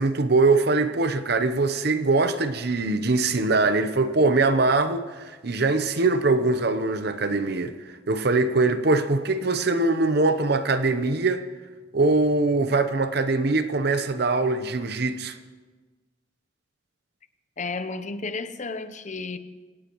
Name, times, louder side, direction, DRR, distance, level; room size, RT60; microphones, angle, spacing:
voice 1, 0.0-7.7 8.1-11.4 11.9-15.4, right 3 dB, 55° right, 0.8 m, -22 dB
voice 2, 17.6-19.4, left 3 dB, 40° left, 0.8 m, -32 dB
26.5 x 17.5 x 3.1 m
head